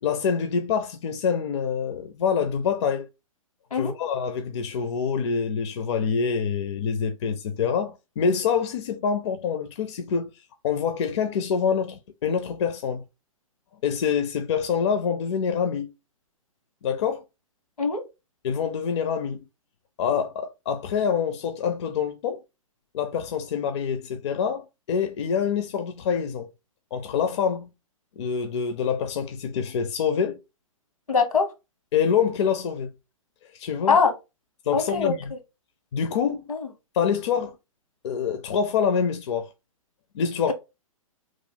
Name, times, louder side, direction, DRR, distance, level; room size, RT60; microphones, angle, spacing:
voice 1, 0.0-3.1 3.7-10.3 10.6-13.0 13.8-15.9 16.8-17.2 18.4-19.4 20.0-22.4 22.9-26.5 26.9-27.7 28.2-30.4 31.9-32.9 33.5-34.0 34.6-35.2 35.9-36.5 36.9-37.6 38.0-39.5 40.1-40.5, left 7 dB, 55° left, 0.5 m, -26 dB
voice 2, 31.1-31.5 33.9-34.1 34.7-35.1 36.5-36.7 40.5-40.6, left 5 dB, 85° left, 1.0 m, -22 dB
3.1 x 2.3 x 3.7 m
hypercardioid pair, 120°, 18 cm